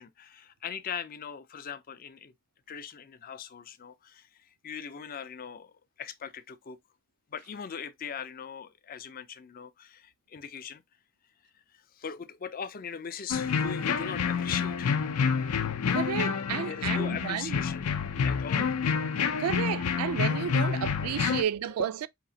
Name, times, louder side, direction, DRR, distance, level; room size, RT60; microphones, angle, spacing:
voice 1, 0.0-2.3 2.7-4.2 4.6-5.7 6.0-6.8 7.3-10.8 12.0-14.9 16.6-17.8 18.2-18.7 21.3-21.4, left 7 dB, 40° left, 0.4 m, -40 dB
sound 1, 13.3-21.4, left 6 dB, 90° left, 0.5 m, -28 dB
voice 2, 15.9-17.6 18.6-18.7 19.4-22.1, right 9 dB, 80° right, 0.3 m, -32 dB
4.9 x 2.9 x 2.7 m
head